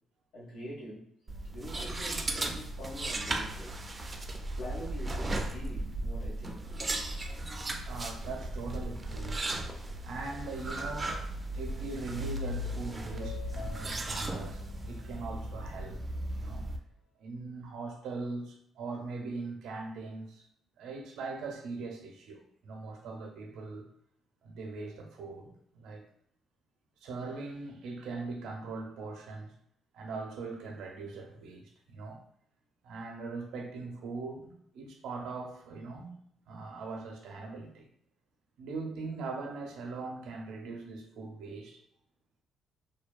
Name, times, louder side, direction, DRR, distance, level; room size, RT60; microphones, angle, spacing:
voice 1, 0.3-1.1 1.5-3.8 4.6-6.7, equal, 90° left, -6 dB, 1.2 m, -44 dB
sound 1, 1.3-16.8, right 1 dB, 25° right, 0.3 m, -36 dB
voice 2, 7.7-9.4 10.0-11.2 11.5-16.0 16.3-16.7 17.2-20.5 20.8-23.9 24.4-26.0 27.0-29.5 29.9-32.2 32.8-36.2 36.5-37.9 38.6-41.8, right 3 dB, 80° right, 2 dB, 0.5 m, -41 dB
sound 2, 11.5-16.0, left 6 dB, 65° left, 0.6 m, -52 dB
2.6 x 2.2 x 2.3 m, 0.71 s
cardioid pair, 90°, 0 cm